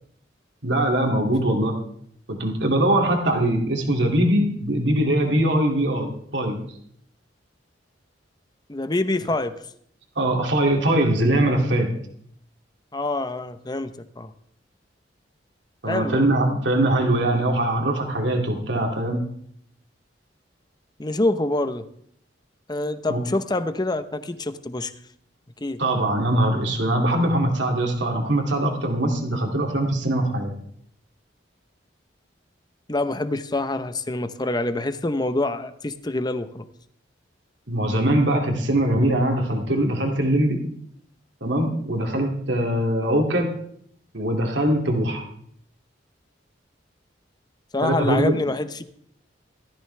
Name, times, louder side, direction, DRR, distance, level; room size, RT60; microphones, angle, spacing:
voice 1, 0.6-1.8 2.3-6.6 10.2-11.9 15.8-19.2 23.1-23.2 25.8-30.5 37.7-40.6 41.4-43.5 44.1-45.2 47.8-48.4, right 1 dB, 70° right, 2 dB, 2.5 m, -22 dB
voice 2, 8.7-9.5 12.9-14.3 15.9-16.4 21.0-21.8 22.7-24.9 25.6-25.8 32.9-36.7 47.7-48.8, left 2 dB, 20° left, 10 dB, 0.8 m, -26 dB
17.0 x 14.0 x 3.4 m, 0.66 s
head